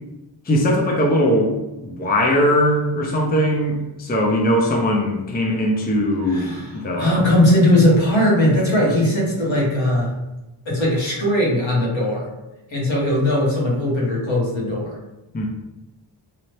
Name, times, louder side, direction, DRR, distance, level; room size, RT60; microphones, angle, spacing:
voice 1, 0.5-7.2 8.6-8.7 15.3-15.5, equal, 20° left, -1 dB, 0.5 m, -20 dB
voice 2, 6.3-10.1 10.7-12.3 12.7-15.0, left 1 dB, 70° left, -4 dB, 1.1 m, -19 dB
2.8 x 2.0 x 3.1 m, 1.0 s
cardioid pair, 50°, 47 cm